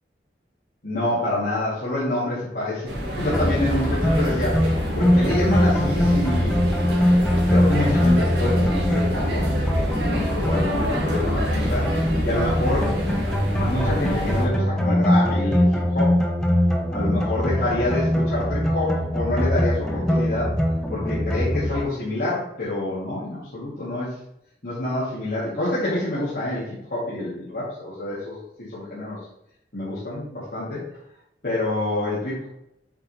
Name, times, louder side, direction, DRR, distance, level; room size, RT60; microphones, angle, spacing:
voice 1, 0.8-6.6 7.5-9.6 10.1-11.9 12.2-13.0 13.6-16.2 16.9-20.5 20.9-24.1 24.6-29.2 29.7-30.8 31.4-32.5, left 1 dB, 55° left, -10 dB, 2.3 m, -27 dB
sound 1, 2.9-14.5, equal, 75° right, 1.9 m, -28 dB
sound 2, 3.2-21.8, equal, 5° left, 0.8 m, -22 dB
8.2 x 3.7 x 4.2 m, 0.79 s
head